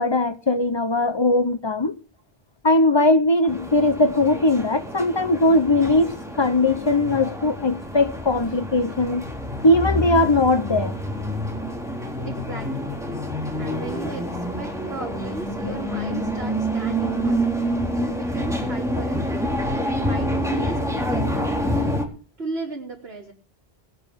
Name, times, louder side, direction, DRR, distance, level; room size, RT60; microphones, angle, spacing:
voice 1, 0.0-2.0 2.6-9.2 9.6-10.9, left 2 dB, 25° left, 0.8 m, -20 dB
sound 1, 3.5-22.0, equal, 5° right, 3.8 m, -27 dB
voice 2, 12.2-13.0 13.6-17.7 17.9-22.0 22.4-23.3, right 3 dB, 65° right, 3.9 m, -36 dB
20.5 x 9.4 x 5.2 m
omnidirectional pair, 1.1 m